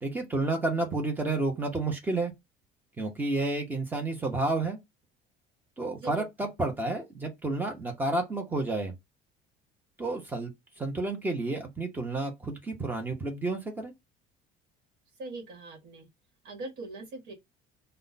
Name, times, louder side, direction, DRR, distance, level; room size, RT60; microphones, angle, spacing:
voice 1, 0.0-2.3 3.0-4.8 5.8-8.9 10.0-10.5 10.8-13.9, right 2 dB, 10° right, 0.9 m, -30 dB
voice 2, 5.9-6.5 15.2-16.1 16.4-17.3, right 2 dB, 55° right, 1.3 m, -41 dB
4.6 x 2.3 x 4.0 m
cardioid pair, 170°, 19 cm